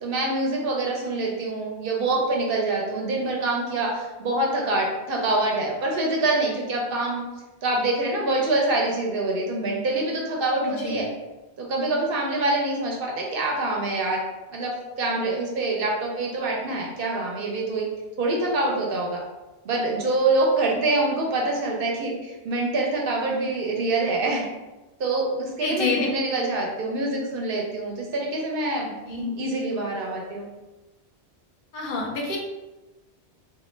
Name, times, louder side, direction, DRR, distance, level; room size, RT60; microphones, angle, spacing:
voice 1, 0.0-7.2 7.6-11.1 11.6-14.2 14.5-14.7 15.0-17.9 18.2-19.2 19.6-24.5 25.0-30.5, right 2 dB, 65° right, -1 dB, 0.7 m, -25 dB
voice 2, 10.6-11.0 25.6-26.1 29.1-29.2 31.7-32.4, left 4 dB, 60° left, -2 dB, 0.6 m, -28 dB
2.2 x 2.0 x 3.0 m, 1.1 s
omnidirectional pair, 1.1 m